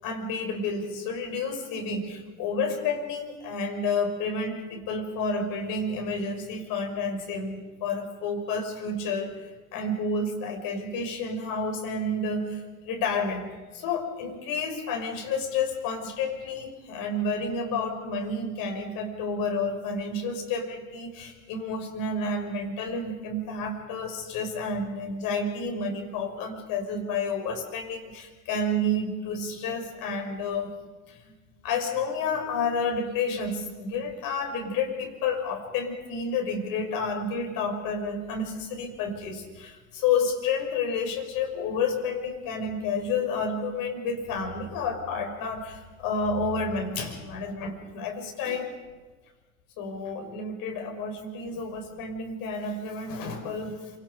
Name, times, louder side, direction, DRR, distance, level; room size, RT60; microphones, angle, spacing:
voice 1, 0.0-30.7 31.1-31.3 31.6-48.7 49.8-53.9, left 3 dB, 50° left, 3 dB, 6.2 m, -30 dB
27.0 x 26.0 x 5.4 m, 1.3 s
hypercardioid pair, 85°, 42 cm